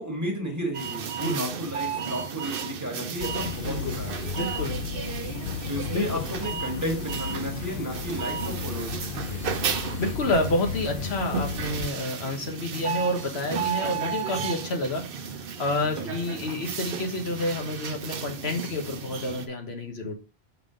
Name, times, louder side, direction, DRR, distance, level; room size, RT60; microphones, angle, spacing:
voice 1, 0.0-4.1 5.7-8.9 9.3-9.5 16.0-16.1, equal, 15° right, 2 dB, 1.6 m, -33 dB
sound 1, 0.7-19.5, right 7 dB, 65° right, 0.8 m, -33 dB
sound 2, 3.2-11.9, left 7 dB, 60° left, 0.7 m, -34 dB
voice 2, 3.6-4.0 4.3-4.8 5.9-6.2 9.7-20.1, left 2 dB, 80° left, 3 dB, 1.5 m, -29 dB
6.6 x 3.7 x 5.0 m, 0.34 s
omnidirectional pair, 1.1 m